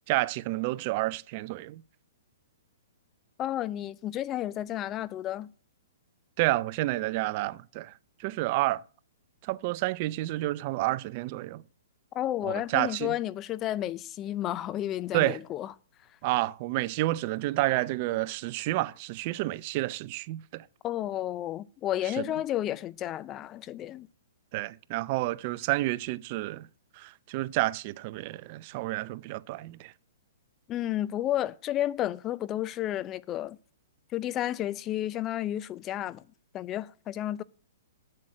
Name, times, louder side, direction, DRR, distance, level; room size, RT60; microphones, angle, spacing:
voice 1, 0.1-1.8 6.4-7.9 8.2-8.8 9.4-11.6 12.4-13.1 15.1-15.4 16.2-20.6 22.2-22.3 24.5-26.7 27.0-29.9, right 18 dB, 40° right, 0.4 m, -30 dB
voice 2, 3.4-5.5 12.1-15.7 20.8-24.1 30.7-33.6 34.1-36.2 36.5-37.4, left 13 dB, 25° left, 0.4 m, -32 dB
7.7 x 7.5 x 7.6 m
hypercardioid pair, 135°, 0 cm